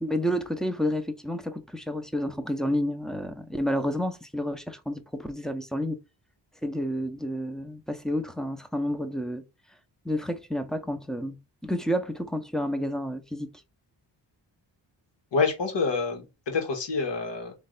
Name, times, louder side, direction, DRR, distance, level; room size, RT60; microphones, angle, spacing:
voice 1, 0.0-6.0 6.6-9.4 10.0-11.4 11.6-13.5, equal, ahead, 0.9 m, -30 dB
voice 2, 15.3-17.5, left 4 dB, 70° left, 2.0 m, -27 dB
3.3 x 3.3 x 4.0 m
cardioid pair, 55°, 45 cm